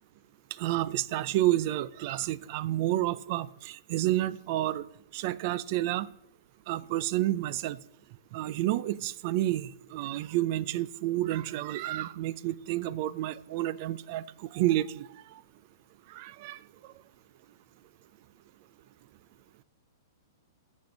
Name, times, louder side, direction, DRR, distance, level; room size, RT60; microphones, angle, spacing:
voice 1, 0.5-4.9 5.1-6.1 6.7-7.8 8.3-15.4 16.1-16.6, right 15 dB, 35° right, 0.4 m, -30 dB
14.5 x 6.2 x 5.2 m
hypercardioid pair, 165°, 2 cm